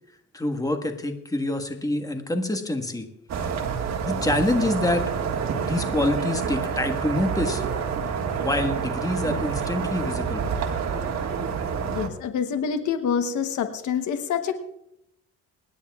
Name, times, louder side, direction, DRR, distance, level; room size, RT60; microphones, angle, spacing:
voice 1, 0.3-3.1 4.0-5.1 5.6-7.6 8.4-10.4, left 1 dB, 10° left, 6 dB, 1.5 m, -26 dB
sound 1, 3.3-12.1, right 6 dB, 60° right, 1.7 m, -28 dB
voice 2, 11.9-14.6, left 7 dB, 75° left, 8 dB, 1.1 m, -26 dB
27.0 x 10.0 x 2.4 m, 0.81 s
cardioid pair, 90°, 30 cm